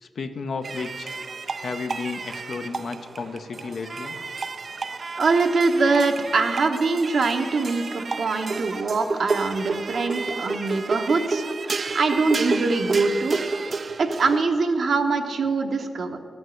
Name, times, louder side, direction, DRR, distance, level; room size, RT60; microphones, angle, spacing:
voice 1, 0.0-1.2 1.6-4.2, left 4 dB, 70° left, 7 dB, 0.7 m, -33 dB
sound 1, 0.6-14.4, right 4 dB, 50° right, 0.4 m, -31 dB
voice 2, 5.2-13.4 14.0-16.2, right 3 dB, 65° right, 5 dB, 0.9 m, -23 dB
13.0 x 5.3 x 7.7 m, 2.3 s
cardioid pair, 70°, 0 cm